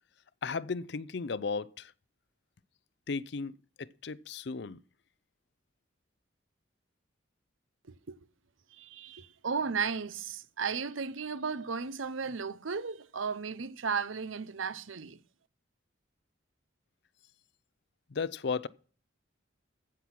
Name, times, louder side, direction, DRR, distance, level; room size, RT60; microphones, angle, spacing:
voice 1, 0.4-1.9 3.1-4.8 18.1-18.7, left 4 dB, 60° left, 0.5 m, -35 dB
voice 2, 8.7-15.2, right 5 dB, 85° right, 0.8 m, -35 dB
15.0 x 6.2 x 5.9 m
head